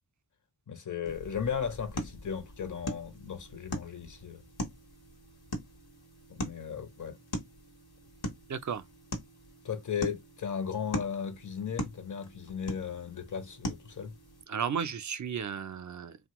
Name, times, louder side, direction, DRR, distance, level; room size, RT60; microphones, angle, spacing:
voice 1, 0.7-4.4 6.3-7.2 9.6-14.1, left 7 dB, 50° left, 0.7 m, -36 dB
sound 1, 1.1-14.4, left 1 dB, 70° left, 1.0 m, -41 dB
voice 2, 8.5-8.8 14.5-16.2, right 7 dB, 50° right, 0.5 m, -34 dB
2.9 x 2.1 x 2.9 m
cardioid pair, 45°, 39 cm